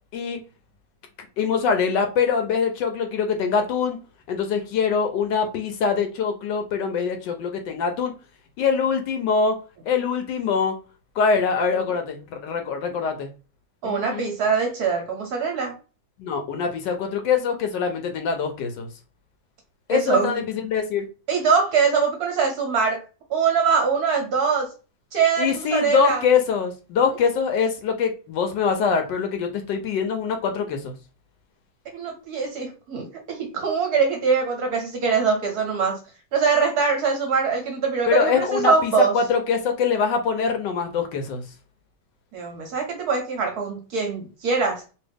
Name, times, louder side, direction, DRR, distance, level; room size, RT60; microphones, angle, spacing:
voice 1, 1.4-4.0 4.3-8.1 8.6-9.6 9.9-10.7 11.2-13.3 13.8-14.3 16.2-18.9 19.9-21.1 25.4-30.9 38.1-41.4, left 6 dB, 75° left, 5 dB, 1.2 m, -23 dB
voice 2, 13.8-15.7 19.9-20.3 21.3-23.0 23.3-24.7 25.1-26.2 31.9-36.0 36.3-39.1 42.3-44.8, right 5 dB, 65° right, 3 dB, 1.1 m, -23 dB
3.1 x 2.5 x 3.2 m, 0.33 s
omnidirectional pair, 2.1 m